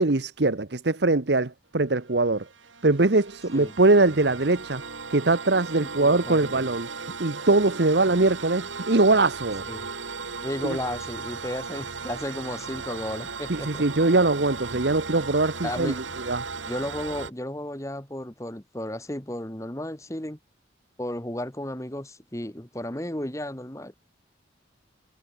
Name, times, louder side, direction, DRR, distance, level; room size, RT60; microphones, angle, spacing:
voice 1, 0.0-2.4 2.8-4.8 5.1-6.9 7.2-9.6 10.6-10.8 13.5-15.9 16.2-16.4, right 2 dB, 60° right, 1.0 m, -22 dB
sound 1, 2.1-17.3, right 4 dB, 85° right, 2.8 m, -37 dB
voice 2, 5.8-6.7 9.7-9.9 10.4-13.8 14.7-14.8 15.6-16.0 16.6-20.4 21.0-23.9, left 1 dB, 15° left, 1.7 m, -34 dB
head